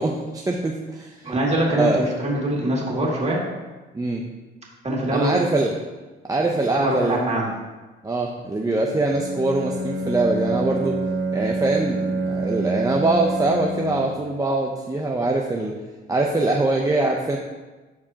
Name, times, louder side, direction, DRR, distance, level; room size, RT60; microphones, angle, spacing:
voice 1, 0.0-1.3 1.8-2.0 3.9-4.2 5.1-5.7 6.2-7.5 8.0-11.0 11.3-15.7 16.1-17.4, right 2 dB, 15° right, 0 dB, 0.7 m, -23 dB
voice 2, 1.2-3.4 4.8-5.4 6.7-7.4, right 1 dB, 35° right, -3 dB, 2.3 m, -23 dB
Bowed string instrument, 9.1-14.2, right 2 dB, 60° right, 0.9 m, -27 dB
12.0 x 4.7 x 2.9 m, 1.2 s
cardioid pair, 90°, 20 cm